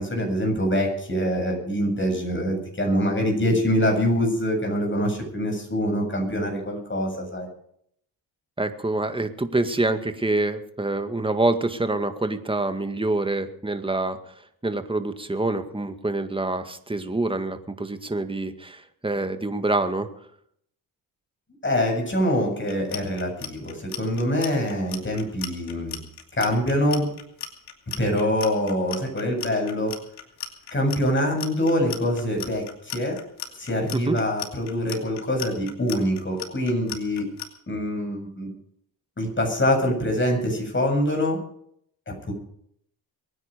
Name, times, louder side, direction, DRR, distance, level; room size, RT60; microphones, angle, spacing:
voice 1, 0.0-7.5 21.6-26.0 26.4-27.1 28.0-29.9 30.7-32.7 32.9-33.2 33.6-37.3 37.7-38.5 39.2-41.4 42.3-42.4, equal, 25° left, 2 dB, 7.7 m, -24 dB
voice 2, 8.6-14.3 14.6-20.1 33.9-34.2, right 2 dB, 10° right, 8 dB, 1.9 m, -26 dB
Clock, 22.6-37.5, left 9 dB, 65° left, 2.6 m, -36 dB
22.5 x 10.0 x 5.2 m, 0.67 s
supercardioid pair, 70°, 43 cm